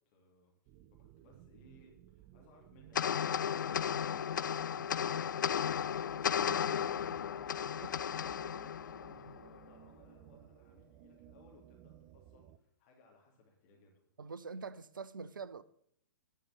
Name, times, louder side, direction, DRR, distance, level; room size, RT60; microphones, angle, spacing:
voice 1, 0.1-0.5 1.0-4.3 4.6-14.0, left 3 dB, 40° left, 3.0 m, -64 dB
sound 1, 0.7-12.6, right 13 dB, 30° right, 0.5 m, -58 dB
sound 2, 3.0-9.6, left 8 dB, 65° left, 0.4 m, -34 dB
voice 2, 14.2-15.6, right 5 dB, 75° right, 0.6 m, -44 dB
11.5 x 5.6 x 7.8 m
figure-of-eight pair, 115°, 11 cm